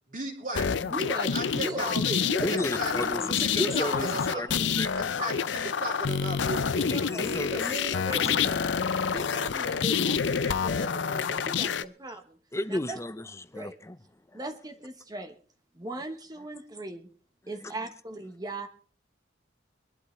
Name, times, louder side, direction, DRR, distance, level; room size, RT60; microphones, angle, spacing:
voice 1, 0.1-0.9 1.3-2.2 2.5-2.9 3.4-3.5 3.8-4.5 4.9-6.9, right 2 dB, 45° right, 3.0 m, -35 dB
sound 1, 0.5-11.8, left 6 dB, 65° left, 0.5 m, -28 dB
voice 2, 0.9-1.9 2.2-2.4 2.9-3.1 3.6-4.8 6.8-8.7 9.1-12.4 12.7-13.0 13.5-13.8 14.3-15.3 15.7-17.1 17.5-18.7, right 1 dB, 20° right, 1.0 m, -38 dB
voice 3, 2.4-4.1 4.4-5.2 6.9-7.5 7.9-8.3 12.5-14.0 14.3-14.4 17.5-17.7, left 1 dB, 15° left, 0.6 m, -33 dB
23.5 x 11.5 x 3.2 m
head